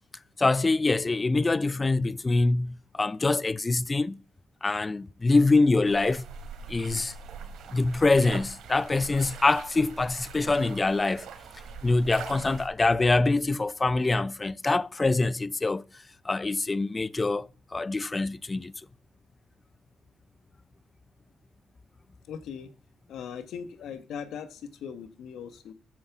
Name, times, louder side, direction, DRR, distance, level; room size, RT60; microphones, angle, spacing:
voice 1, 0.4-4.2 4.6-6.2 6.7-7.1 7.7-11.3 11.8-15.8 16.2-18.7, left 3 dB, 25° left, 0.4 m, -24 dB
sound 1, 5.8-12.7, right 5 dB, 80° right, 2.7 m, -43 dB
voice 2, 22.3-22.7 23.1-25.7, left 7 dB, 75° left, 1.3 m, -39 dB
9.5 x 7.4 x 7.1 m
cardioid pair, 90°, 0 cm